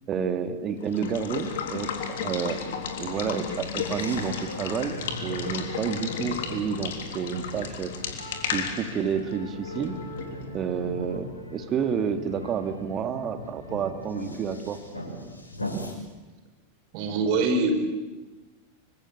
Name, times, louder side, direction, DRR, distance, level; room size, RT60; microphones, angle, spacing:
voice 1, 0.1-7.9 8.5-10.0 10.5-14.8, right 7 dB, 30° right, 8 dB, 2.3 m, -30 dB
Water / Water tap faucet / Liquid, 0.8-10.4, left 6 dB, 55° left, 3.5 m, -34 dB
sound 1, 3.8-15.9, left 1 dB, 80° left, 5.9 m, -40 dB
voice 2, 16.9-17.7, right 4 dB, 45° right, 6 dB, 4.7 m, -24 dB
26.0 x 24.5 x 8.3 m, 1.2 s
figure-of-eight pair, 90°, 0 cm